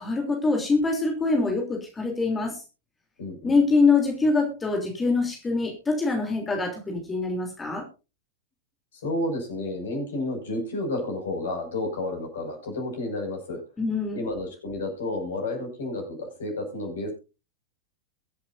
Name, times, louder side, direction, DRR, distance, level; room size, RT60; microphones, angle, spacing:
voice 1, 0.0-2.6 3.4-7.8 13.8-14.3, left 3 dB, 15° left, 2 dB, 3.2 m, -24 dB
voice 2, 3.2-3.6 8.9-13.6 14.1-17.1, left 2 dB, 60° left, 3 dB, 6.4 m, -31 dB
23.5 x 8.5 x 2.7 m, 0.30 s
figure-of-eight pair, 90°, 0 cm